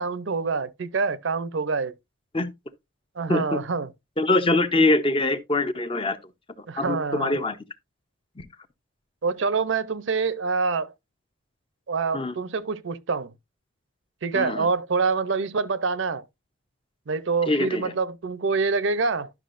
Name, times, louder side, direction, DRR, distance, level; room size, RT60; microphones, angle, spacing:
voice 1, 0.0-1.9 3.2-3.9 6.7-7.4 9.2-10.9 11.9-13.3 14.2-16.2 17.1-19.3, right 4 dB, 65° right, 0.6 m, -26 dB
voice 2, 4.2-6.2 6.8-7.6 8.4-8.5 12.1-12.3 14.3-14.7 17.5-17.8, left 2 dB, 25° left, 0.6 m, -23 dB
11.5 x 5.9 x 2.5 m
head